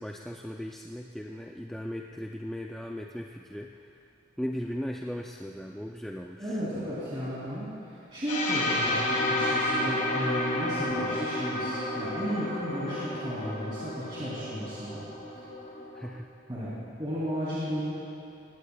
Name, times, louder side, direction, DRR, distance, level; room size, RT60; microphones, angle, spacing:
voice 1, 0.0-4.0 4.4-6.6 15.9-16.3, equal, ahead, 0 dB, 0.3 m, -37 dB
voice 2, 6.4-15.1 16.5-17.8, equal, 25° right, -11 dB, 3.0 m, -34 dB
sound 1, 8.3-16.1, left 1 dB, 40° left, 2.0 m, -31 dB
20.5 x 17.0 x 2.3 m, 2.8 s
head